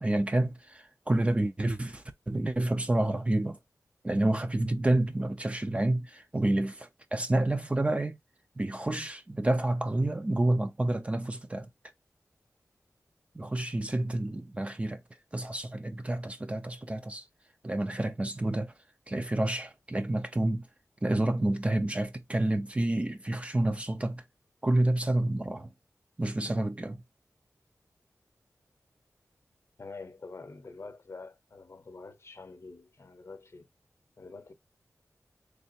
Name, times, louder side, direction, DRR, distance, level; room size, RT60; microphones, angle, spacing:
voice 1, 0.0-3.6 4.0-8.2 8.6-11.7 13.3-15.0 15.3-17.3 17.6-18.7 19.1-20.7 21.0-24.2 24.6-25.7 26.2-27.0, right 1 dB, 20° right, 0.4 m, -29 dB
voice 2, 29.8-33.7 34.2-34.5, left 3 dB, 50° left, 0.7 m, -46 dB
3.4 x 3.3 x 2.8 m
wide cardioid pair, 85°, 6 cm